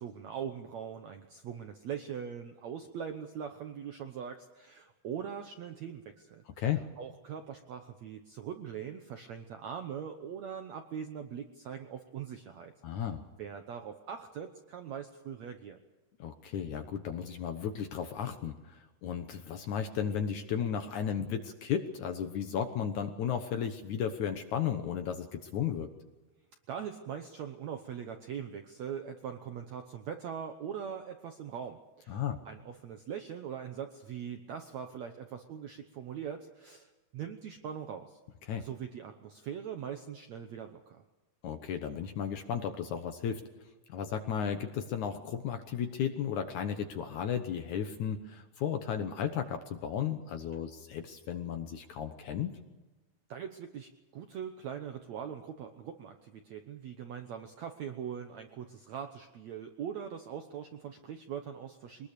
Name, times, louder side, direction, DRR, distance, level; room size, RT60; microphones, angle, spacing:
voice 1, 0.0-6.4 7.0-13.1 13.4-15.8 21.2-21.4 26.7-38.2 38.6-41.0 53.3-62.1, right 8 dB, 70° right, 6 dB, 1.7 m, -41 dB
voice 2, 12.8-13.2 16.2-25.9 32.1-32.4 38.5-38.6 41.4-43.4 43.9-52.6, left 8 dB, 65° left, 7 dB, 2.1 m, -34 dB
23.5 x 20.0 x 6.8 m, 1.2 s
omnidirectional pair, 4.5 m